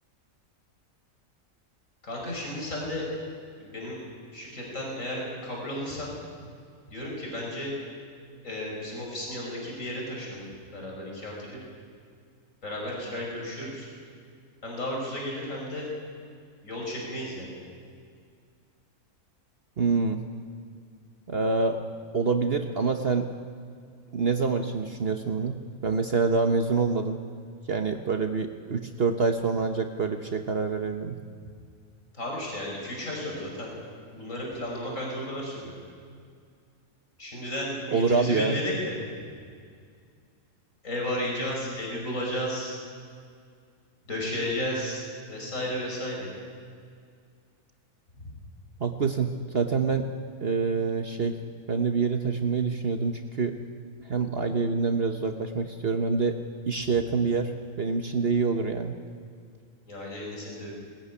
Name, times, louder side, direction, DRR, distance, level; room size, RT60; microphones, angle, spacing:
voice 1, 2.0-3.0 3.6-4.0 4.3-6.1 6.9-7.7 8.4-11.6 12.6-13.9 14.6-15.9 16.6-17.6 32.1-33.7 34.1-35.7 37.2-39.0 40.8-42.8 44.1-46.3 48.2-48.3 59.9-60.7, left 1 dB, 65° left, -2 dB, 6.0 m, -33 dB
voice 2, 19.8-20.2 21.3-21.8 22.1-23.3 24.1-25.6 25.8-27.2 27.7-31.2 37.9-38.6 48.8-50.1 50.4-51.4 51.7-53.5 54.0-56.4 56.7-57.5 57.8-59.0, right 4 dB, 45° right, 6 dB, 1.3 m, -26 dB
21.5 x 18.5 x 9.9 m, 2.2 s
omnidirectional pair, 1.5 m